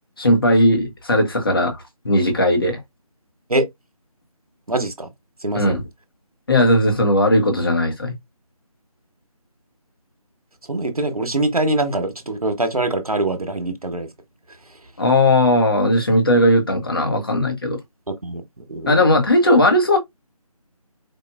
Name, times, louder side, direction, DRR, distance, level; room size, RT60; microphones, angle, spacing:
voice 1, 0.2-2.8 5.5-5.8 6.5-8.1 15.0-17.8 18.9-20.0, left 1 dB, 40° left, 1.2 m, -17 dB
voice 2, 4.7-5.1 5.4-5.7 10.7-14.1 18.1-19.0, right 2 dB, 75° right, 1.1 m, -23 dB
4.6 x 2.6 x 2.4 m
figure-of-eight pair, 160°, 19 cm